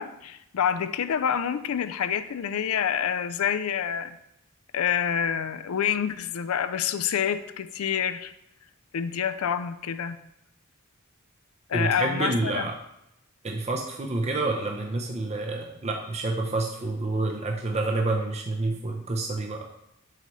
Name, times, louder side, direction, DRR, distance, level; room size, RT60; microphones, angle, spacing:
voice 1, 0.0-4.2 4.7-8.3 8.9-10.2 11.7-12.7, left 8 dB, 90° left, 12 dB, 0.4 m, -27 dB
voice 2, 11.7-12.8 13.4-19.7, right 2 dB, 30° right, 1 dB, 0.6 m, -28 dB
7.8 x 5.4 x 3.1 m, 0.83 s
head